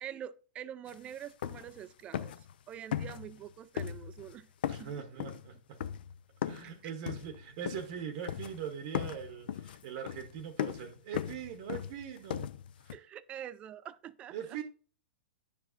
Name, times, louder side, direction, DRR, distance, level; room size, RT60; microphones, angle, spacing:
voice 1, 0.0-2.3 2.7-4.5 4.8-5.2 6.8-6.9 12.9-14.6, right 10 dB, 20° right, 0.4 m, -45 dB
sound 1, 0.9-1.0 1.2-1.8 2.1-2.5 2.9-3.5 3.8-4.3 4.6-6.7 7.1-8.0 8.3-8.7 8.9-13.0, left 10 dB, 65° left, 0.5 m, -38 dB
voice 2, 4.7-5.8 6.4-12.5 12.8-13.0 14.3-14.6, right 8 dB, 45° right, 0.8 m, -41 dB
9.9 x 4.9 x 2.5 m
hypercardioid pair, 140°, 6 cm